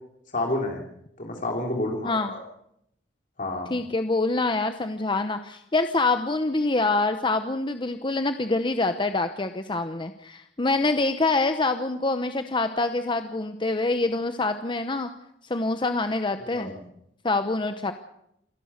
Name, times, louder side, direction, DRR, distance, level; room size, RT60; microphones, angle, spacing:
voice 1, 0.3-0.8 1.2-2.4 3.4-3.7 16.4-16.8, left 2 dB, 45° left, 1 dB, 3.2 m, -29 dB
voice 2, 3.7-15.1 15.4-16.7 17.2-17.9, left 3 dB, 25° left, 8 dB, 0.9 m, -25 dB
28.0 x 11.5 x 8.1 m, 0.78 s
head